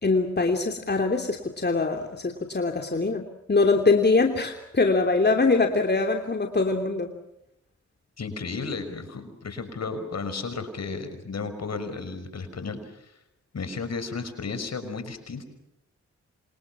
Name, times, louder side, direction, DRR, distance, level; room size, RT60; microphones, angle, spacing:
voice 1, 0.0-3.2 3.5-7.1, left 3 dB, 35° left, 4 dB, 3.1 m, -23 dB
voice 2, 8.2-13.1 13.5-15.5, left 4 dB, 60° left, 9 dB, 5.5 m, -33 dB
27.5 x 27.5 x 6.2 m, 0.81 s
cardioid pair, 50°, 29 cm